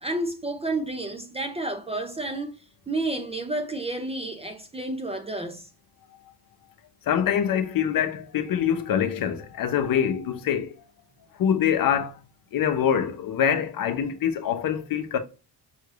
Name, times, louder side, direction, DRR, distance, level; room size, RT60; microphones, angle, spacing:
voice 1, 0.0-5.7, right 2 dB, 15° right, 0.5 m, -31 dB
voice 2, 7.1-10.7 11.4-12.2 12.5-15.2, left 8 dB, 55° left, 0.8 m, -24 dB
5.6 x 3.2 x 2.4 m
cardioid pair, 135°, 41 cm